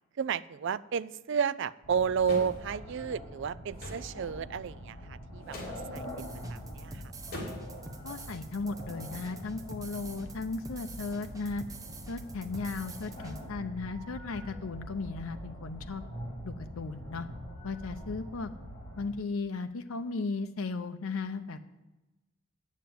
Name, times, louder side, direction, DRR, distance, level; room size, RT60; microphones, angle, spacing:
voice 1, 0.2-7.0, right 7 dB, 60° right, 17 dB, 0.4 m, -32 dB
sound 1, 1.8-19.1, equal, 20° left, 3.1 m, -44 dB
sound 2, 2.2-2.6 3.8-4.1 5.5-5.8 7.3-7.7, left 1 dB, 45° left, 3.2 m, -40 dB
sound 3, 6.0-13.4, right 3 dB, 15° right, 0.9 m, -47 dB
voice 2, 8.0-11.6 12.1-16.0 16.4-17.3 17.6-18.5 19.0-21.6, left 3 dB, 80° left, 8 dB, 0.6 m, -36 dB
9.1 x 7.4 x 8.5 m, 1.0 s
head